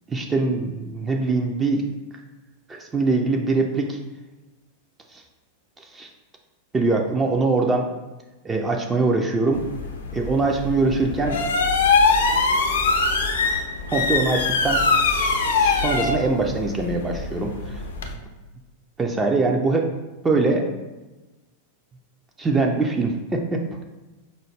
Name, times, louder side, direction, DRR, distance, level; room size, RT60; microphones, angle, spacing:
voice 1, 0.1-1.8 2.7-4.0 5.1-5.2 5.8-6.1 6.7-7.9 8.4-9.7 10.1-11.4 13.9-17.8 19.0-19.9 20.2-20.7 22.4-23.8, right 3 dB, 15° right, 2 dB, 0.4 m, -23 dB
sound 1, 9.5-18.1, left 4 dB, 65° left, 0.4 m, -23 dB
5.2 x 2.0 x 3.2 m, 1.1 s
figure-of-eight pair, 90°, 0 cm